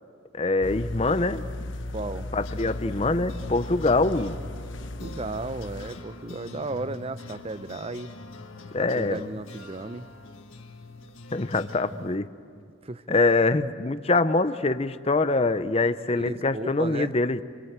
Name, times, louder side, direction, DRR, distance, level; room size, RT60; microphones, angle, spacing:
voice 1, 0.3-1.4 2.3-4.4 8.7-9.3 11.3-12.3 13.1-17.4, left 3 dB, 30° left, 12 dB, 0.7 m, -24 dB
sound 1, 0.6-5.9, left 1 dB, 65° left, 1.1 m, -36 dB
voice 2, 1.9-2.3 5.0-8.1 8.8-10.1 12.8-13.2 16.2-17.1, right 2 dB, 30° right, 14 dB, 0.6 m, -34 dB
sound 2, 2.4-12.2, left 2 dB, 85° left, 1.7 m, -43 dB
29.0 x 23.0 x 8.1 m, 2.3 s
head